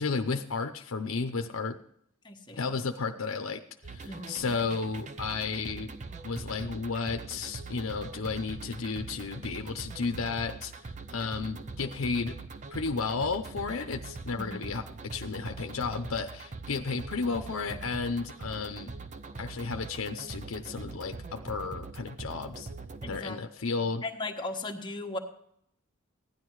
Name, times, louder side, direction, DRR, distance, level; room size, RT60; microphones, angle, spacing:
voice 1, 0.0-1.8 2.6-3.6 3.9-5.9 6.2-10.7 11.1-12.3 12.7-18.9 19.4-22.7 23.1-24.0, left 4 dB, 85° left, 6 dB, 0.7 m, -33 dB
voice 2, 2.2-2.6 4.1-4.4 14.4-14.6 23.0-23.4 23.8-25.2, left 2 dB, 20° left, 3 dB, 1.3 m, -37 dB
sound 1, 3.8-23.2, right 3 dB, 35° right, 0.7 m, -42 dB
16.0 x 10.5 x 4.7 m, 0.73 s
head